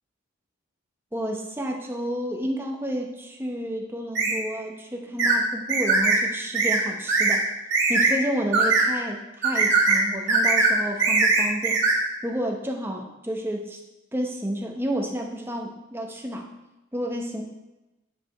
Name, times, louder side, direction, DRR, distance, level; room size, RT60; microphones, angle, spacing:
voice 1, 1.1-7.4 7.9-11.8 12.2-13.8 14.1-16.5 16.9-17.4, equal, 10° right, 1 dB, 0.8 m, -30 dB
sound 1, 4.1-4.4 5.2-5.4 5.7-6.2 6.5-6.8 7.1-7.4 7.7-8.1 8.5-8.9 9.4-10.0 10.3-10.7 11.0-12.0, right 4 dB, 60° right, 1.9 m, -20 dB
8.6 x 5.0 x 4.2 m, 1.0 s
head